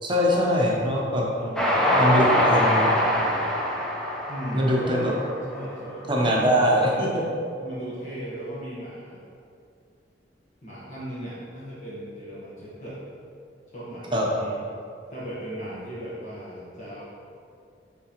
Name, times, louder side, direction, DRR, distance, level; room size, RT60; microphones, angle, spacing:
voice 1, 0.0-1.3 2.0-3.0 4.5-5.1 6.1-7.2 14.1-14.2, equal, 30° right, -3 dB, 0.8 m, -22 dB
voice 2, 1.3-2.4 4.3-5.2 5.5-6.8 7.6-9.2 10.6-13.0 13.7-14.6 15.1-17.0, right 1 dB, 45° left, -9 dB, 1.3 m, -37 dB
Train, 1.6-6.0, left 1 dB, 5° left, 0.7 m, -23 dB
9.5 x 3.7 x 3.0 m, 2.4 s
head